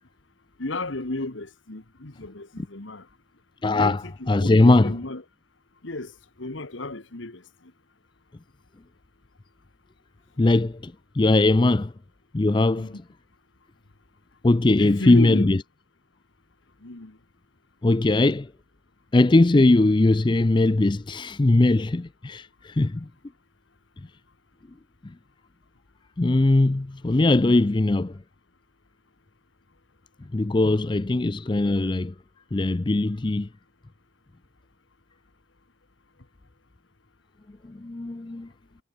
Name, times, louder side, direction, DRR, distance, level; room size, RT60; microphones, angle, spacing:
voice 1, 0.6-3.0 3.7-5.2 5.8-6.1 6.4-7.4 12.7-13.0 14.8-15.5 16.8-17.2, left 2 dB, 75° left, 1.7 m, -33 dB
voice 2, 3.6-5.0 10.4-11.9 12.3-13.0 14.4-15.6 17.8-18.5 19.1-23.1 25.0-25.1 26.2-28.2 30.3-32.1 32.5-33.5 37.6-38.5, left 2 dB, 25° left, 0.4 m, -20 dB
head